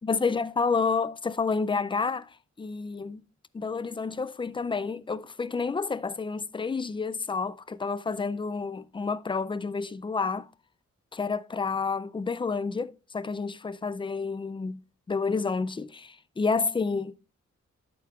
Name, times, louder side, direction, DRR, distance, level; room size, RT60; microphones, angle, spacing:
voice 1, 0.0-2.3 2.6-3.2 3.5-10.5 11.1-14.8 15.1-17.1, left 4 dB, 20° left, 0.3 m, -29 dB
11.5 x 6.8 x 2.4 m
wide cardioid pair, 110°, 29 cm